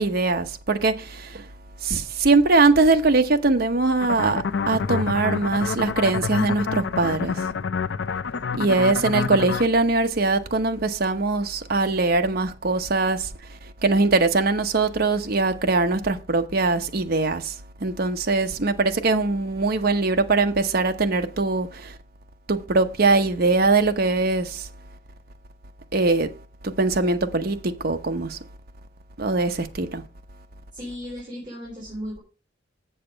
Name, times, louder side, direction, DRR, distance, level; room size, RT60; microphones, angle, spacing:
voice 1, 0.0-1.4 1.8-7.4 8.6-13.3 13.8-17.5 17.8-21.9 22.5-24.7 25.9-26.3 26.6-28.4 29.2-30.0, right 3 dB, 55° right, 0.9 m, -22 dB
sound 1, 4.0-9.7, left 5 dB, 70° left, 0.5 m, -27 dB
voice 2, 30.7-32.2, equal, 25° right, 4.0 m, -35 dB
7.7 x 6.7 x 5.1 m
head